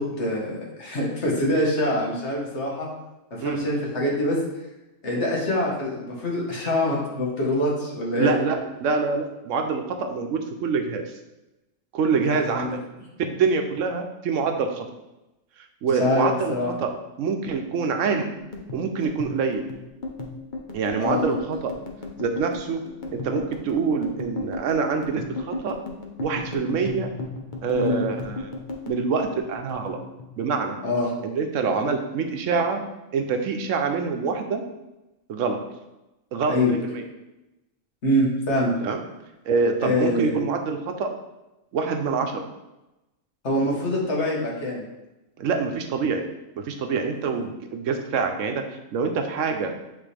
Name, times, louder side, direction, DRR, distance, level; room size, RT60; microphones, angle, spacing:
voice 1, 0.0-2.9 3.3-4.4 5.0-8.4 12.3-12.8 15.9-16.7 21.0-21.3 27.7-28.0 30.8-31.1 36.5-36.7 38.0-38.7 39.8-40.4 43.4-44.8, left 1 dB, 65° left, -3 dB, 1.7 m, -25 dB
voice 2, 8.1-11.2 11.9-12.8 13.2-14.9 15.8-16.6 16.8-16.9 17.2-18.3 18.7-19.6 20.7-21.7 22.2-22.8 23.1-25.8 26.2-27.1 27.6-28.5 28.9-30.0 30.4-30.8 31.2-32.8 33.1-34.6 35.3-35.6 36.3-37.0 38.8-39.0 39.4-41.1 41.7-42.5 45.4-46.2 46.6-48.6 48.9-49.7, right 5 dB, 80° right, 5 dB, 1.0 m, -25 dB
sound 1, 18.4-30.9 31.2-32.3 32.5-32.9 33.2-33.9, left 3 dB, 45° left, 0.8 m, -36 dB
8.0 x 3.7 x 3.3 m, 0.98 s
omnidirectional pair, 1.3 m